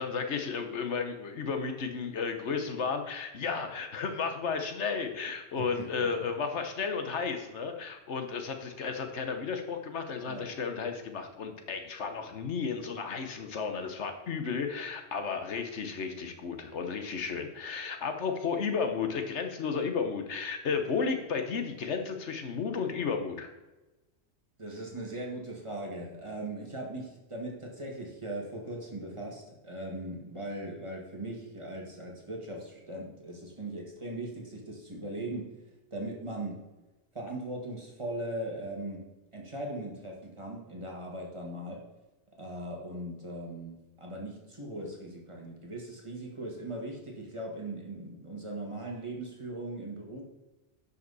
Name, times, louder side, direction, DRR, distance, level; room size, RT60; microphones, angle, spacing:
voice 1, 0.0-23.5, left 5 dB, 85° left, 6 dB, 1.3 m, -33 dB
voice 2, 5.6-6.1 10.3-10.5 24.6-35.5 35.9-36.6 37.1-39.1 39.3-41.8 42.4-50.2, right 1 dB, 25° right, -1 dB, 1.9 m, -39 dB
10.5 x 5.8 x 4.1 m, 1.1 s
omnidirectional pair, 1.2 m